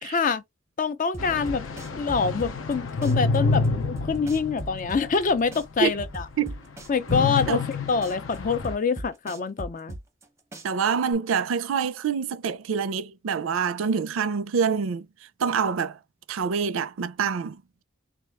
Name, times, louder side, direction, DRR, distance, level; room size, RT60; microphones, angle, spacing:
voice 1, 0.0-0.4 0.8-1.6 2.0-6.3 6.9-10.0, left 5 dB, 40° left, 0.4 m, -26 dB
sound 1, 1.1-2.7 3.0-5.2 5.5-7.7 8.0-10.2 10.5-11.1, right 1 dB, 15° right, 0.6 m, -38 dB
sound 2, 1.2-5.5 5.9-6.0 7.1-8.7, left 4 dB, 80° left, 0.6 m, -28 dB
voice 2, 10.6-15.1 15.4-16.0 16.3-17.8, right 6 dB, 80° right, 0.4 m, -26 dB
3.6 x 2.3 x 3.2 m
head